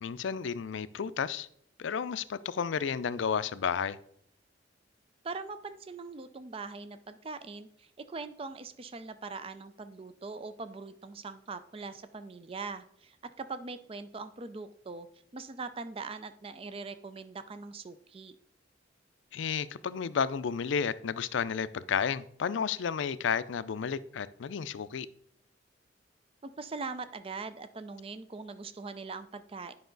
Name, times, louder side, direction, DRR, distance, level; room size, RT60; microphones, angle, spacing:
voice 1, 0.0-1.5 1.8-4.0 19.3-25.1, left 6 dB, 75° left, 15 dB, 0.4 m, -32 dB
voice 2, 5.2-15.1 15.3-18.3 26.4-29.7, right 4 dB, 30° right, 12 dB, 0.4 m, -41 dB
9.2 x 5.5 x 3.9 m, 0.68 s
head